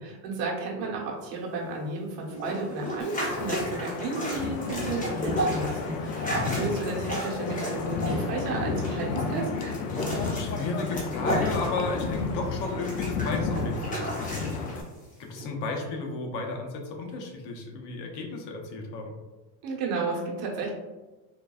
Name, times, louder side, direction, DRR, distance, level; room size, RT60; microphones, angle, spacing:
voice 1, 0.0-9.5 19.6-20.7, right 3 dB, 60° right, -3 dB, 1.1 m, -33 dB
sound 1, 2.3-12.3 12.6-14.8 15.4-15.5, right 1 dB, 15° left, 0.9 m, -34 dB
Wind, 3.0-14.8, left 4 dB, 90° left, 0.6 m, -32 dB
voice 2, 6.3-6.6 10.3-14.5 15.2-19.1, left 3 dB, 55° left, 2 dB, 0.8 m, -33 dB
3.8 x 2.6 x 2.3 m, 1.2 s
supercardioid pair, 115°, 49 cm